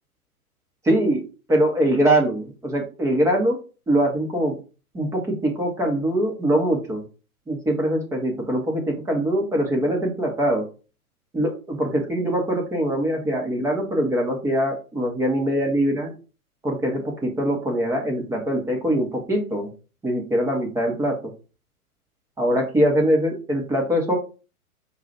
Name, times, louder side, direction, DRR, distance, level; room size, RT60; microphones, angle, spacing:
voice 1, 0.9-1.2 1.5-3.6 3.9-4.5 4.9-7.0 7.5-10.6 11.3-16.1 16.6-19.7 20.0-21.1 22.4-24.2, right 1 dB, 5° right, 1 dB, 0.6 m, -22 dB
5.2 x 2.3 x 4.2 m, 0.34 s
figure-of-eight pair, 115°, 45 cm